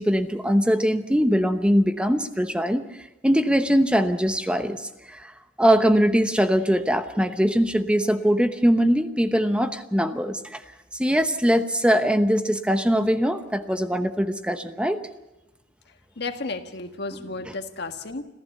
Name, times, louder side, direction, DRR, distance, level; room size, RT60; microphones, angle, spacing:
voice 1, 0.0-2.9 3.2-4.8 5.1-5.3 5.6-10.6 11.0-15.0, equal, 5° right, 8 dB, 1.0 m, -21 dB
voice 2, 16.2-18.2, left 3 dB, 65° left, 7 dB, 1.7 m, -33 dB
26.5 x 15.0 x 6.8 m, 0.99 s
head